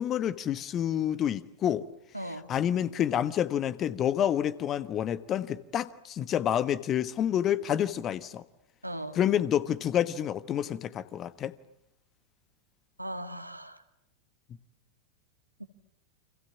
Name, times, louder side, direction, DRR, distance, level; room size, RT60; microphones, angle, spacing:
voice 1, 0.0-1.9 2.5-8.4 9.1-11.5, left 10 dB, 30° left, 1.3 m, -28 dB
voice 2, 2.1-2.5 8.8-9.2 13.0-13.8 15.6-15.7, right 1 dB, 85° right, 2.1 m, -38 dB
29.5 x 26.5 x 7.2 m
figure-of-eight pair, 90°, 0 cm